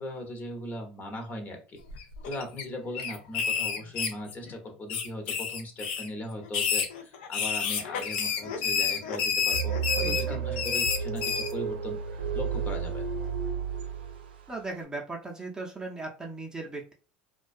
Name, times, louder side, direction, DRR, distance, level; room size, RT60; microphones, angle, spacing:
voice 1, 0.0-1.8 2.2-13.0, left 1 dB, 35° left, 3 dB, 0.9 m, -39 dB
sound 1, 1.9-2.6 2.9-4.5 4.9-6.1 6.5-11.5, left 6 dB, 75° left, 0.5 m, -29 dB
sound 2, 9.5-14.5, right 7 dB, 85° right, 0.4 m, -32 dB
voice 2, 10.0-10.6 14.5-16.9, right 3 dB, 15° right, -1 dB, 0.6 m, -38 dB
2.3 x 2.3 x 2.5 m, 0.37 s
hypercardioid pair, 85°, 5 cm